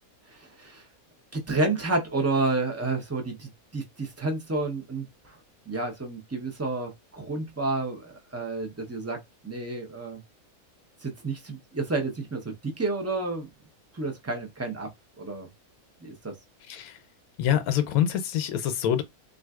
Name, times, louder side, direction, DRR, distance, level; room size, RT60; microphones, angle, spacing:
voice 1, 0.3-0.9 1.3-5.4 5.7-10.2 11.0-13.5 13.9-14.9 15.2-15.5 16.0-16.4, right 3 dB, 25° right, 0.3 m, -30 dB
voice 2, 16.7-17.0 17.4-19.0, left 10 dB, 85° left, 1.1 m, -25 dB
3.8 x 2.5 x 2.3 m
omnidirectional pair, 1.5 m